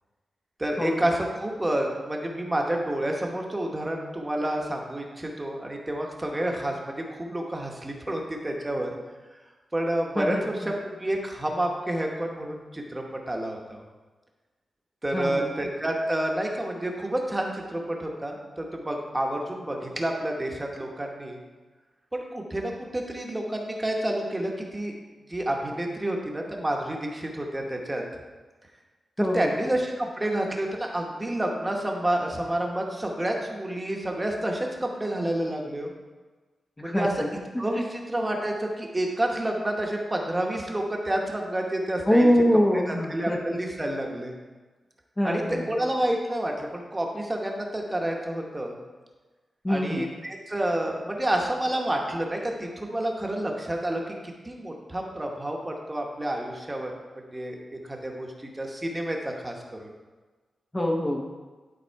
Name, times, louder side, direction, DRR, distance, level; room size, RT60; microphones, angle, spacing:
voice 1, 0.6-8.9 9.7-10.7 11.0-13.8 15.0-21.4 22.1-24.9 25.3-28.0 29.2-35.9 36.8-37.1 37.6-42.3 42.9-44.3 45.2-48.8 49.7-56.9 57.3-57.6 57.9-58.3 58.5-59.9, right 1 dB, 15° right, 1 dB, 1.1 m, -29 dB
voice 2, 10.2-10.7 15.1-15.5 29.2-29.5 36.8-37.3 37.8-37.9 42.1-43.4 45.2-45.7 49.6-50.1 60.7-61.3, equal, 15° left, 0 dB, 0.8 m, -24 dB
11.0 x 4.0 x 4.6 m, 1.3 s
wide cardioid pair, 120°, 0 cm